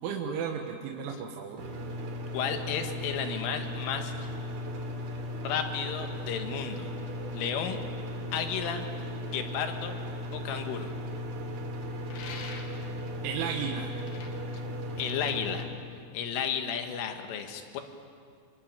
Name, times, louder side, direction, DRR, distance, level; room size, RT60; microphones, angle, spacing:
voice 1, 0.0-1.7 12.9-13.9, right 7 dB, 80° right, 1 dB, 3.8 m, -34 dB
sound 1, 1.6-15.7, left 1 dB, 50° right, 4.2 m, -36 dB
voice 2, 2.3-4.3 5.4-6.9 7.3-7.8 8.3-8.9 9.3-10.0 10.3-10.9 15.0-15.7 16.1-17.8, left 8 dB, 85° left, 5 dB, 4.3 m, -33 dB
sound 2, 12.1-12.9 14.0-14.3, left 5 dB, 55° left, 3.5 m, -43 dB
27.0 x 24.0 x 9.0 m, 2.3 s
omnidirectional pair, 5.5 m